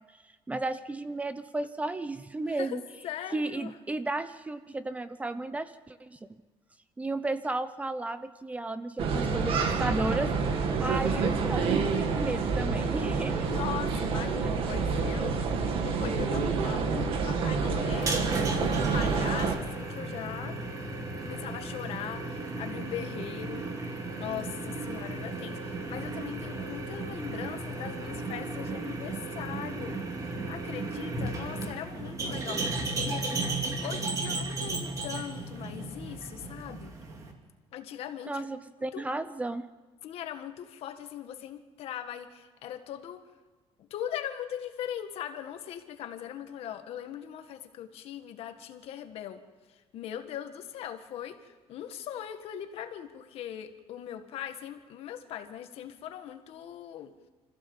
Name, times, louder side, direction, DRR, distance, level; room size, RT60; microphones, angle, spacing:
voice 1, 0.5-2.8 3.3-6.2 7.0-10.3 10.6-11.7 12.0-13.5 38.3-39.7, right 2 dB, 15° right, 12 dB, 0.7 m, -33 dB
voice 2, 3.0-3.7 13.3-15.5 15.8-20.6 21.2-33.3 33.8-36.9 37.7-38.5 38.9-39.1 40.0-43.2 43.8-49.4 49.7-57.1, left 10 dB, 70° left, 7 dB, 1.7 m, -40 dB
sound 1, 9.0-19.6, right 5 dB, 60° right, 2.2 m, -28 dB
sound 2, 17.9-37.3, right 2 dB, 30° right, 2.4 m, -35 dB
25.5 x 15.0 x 7.3 m, 1.3 s
cardioid pair, 155°, 11 cm